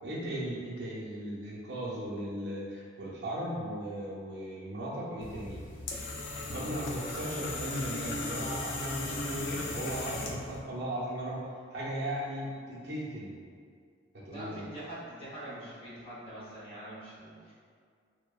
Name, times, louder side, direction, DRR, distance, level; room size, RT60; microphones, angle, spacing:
voice 1, 0.0-5.6 6.5-11.4 11.7-13.4 14.1-14.6, right 1 dB, 65° right, -6 dB, 0.5 m, -37 dB
sound 1, 5.2-10.6, left 2 dB, 80° left, 0.3 m, -37 dB
voice 2, 14.3-17.5, right 1 dB, 30° left, -10 dB, 0.7 m, -44 dB
2.7 x 2.1 x 2.3 m, 2.1 s
head